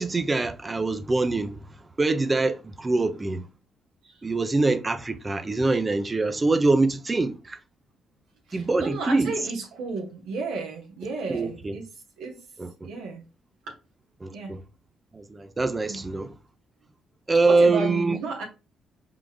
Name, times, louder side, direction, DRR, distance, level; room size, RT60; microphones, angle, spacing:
voice 1, 0.0-1.6 2.0-3.5 4.2-7.6 8.5-9.3 11.3-11.7 12.6-12.7 14.2-14.6 15.1-16.3 17.3-18.2, right 3 dB, 25° right, 0.6 m, -24 dB
voice 2, 8.5-11.9 12.2-12.4 12.8-13.2 14.3-14.5 15.9-16.0 17.4-18.5, right 3 dB, 90° right, 1.1 m, -32 dB
4.7 x 3.8 x 2.3 m
cardioid pair, 90°, 0 cm